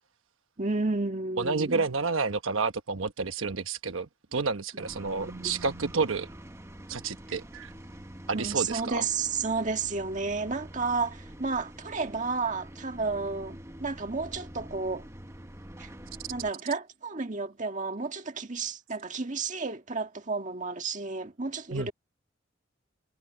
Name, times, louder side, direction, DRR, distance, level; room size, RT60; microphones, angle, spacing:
voice 1, 0.6-1.9 4.7-6.1 6.9-7.0 8.3-15.1 15.8-15.9 16.3-21.9, right 4 dB, 40° right, 1.7 m, -32 dB
voice 2, 1.4-4.1 4.3-6.3 6.9-7.7 8.3-9.0 21.7-21.9, right 4 dB, 90° right, 1.1 m, -30 dB
sound 1, 4.8-16.5, equal, 15° right, 1.1 m, -46 dB
head